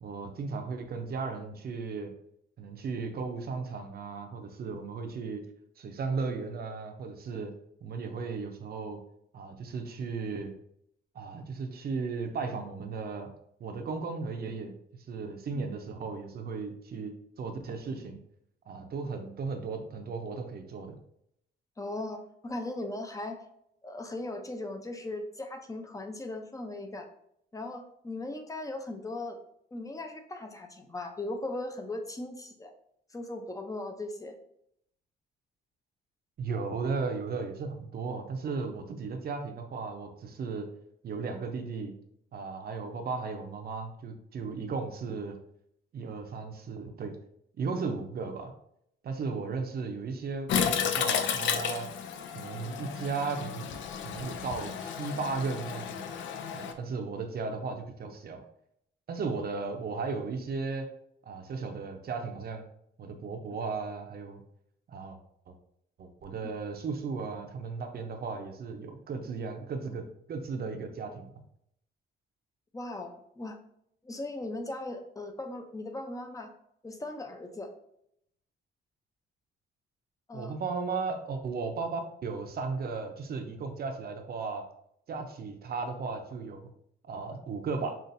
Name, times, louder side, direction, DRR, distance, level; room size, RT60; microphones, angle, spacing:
voice 1, 0.0-2.1 2.6-5.4 5.8-7.5 7.8-9.0 9.3-10.6 11.1-13.3 13.6-14.8 15.1-18.2 18.7-20.9 36.4-40.7 41.0-42.0 42.3-45.4 45.9-47.2 47.6-48.5 49.0-51.9 52.3-56.0 56.5-58.4 59.1-60.9 61.3-62.6 63.0-64.4 64.9-65.2 65.5-65.6 66.0-71.3 80.3-84.7 85.1-86.7 87.1-87.9, right 4 dB, 50° right, 5 dB, 0.7 m, -35 dB
voice 2, 21.8-23.4 23.8-27.1 27.5-29.4 29.7-32.7 33.1-34.4 72.7-73.6 74.0-76.5 76.8-77.7 80.3-80.5, left 2 dB, 15° left, 5 dB, 0.6 m, -38 dB
Toilet flush, 50.5-56.7, left 7 dB, 70° left, 0.5 m, -32 dB
5.5 x 2.5 x 2.6 m, 0.73 s
cardioid pair, 90°, 20 cm